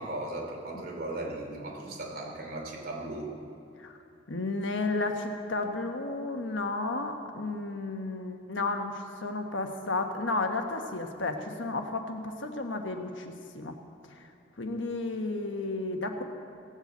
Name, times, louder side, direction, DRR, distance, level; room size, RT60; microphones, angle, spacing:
voice 1, 0.0-3.3, right 2 dB, 50° right, -1 dB, 2.9 m, -37 dB
voice 2, 4.3-13.8 14.6-16.2, left 2 dB, 80° left, 4 dB, 1.4 m, -32 dB
17.5 x 8.0 x 8.0 m, 2.6 s
head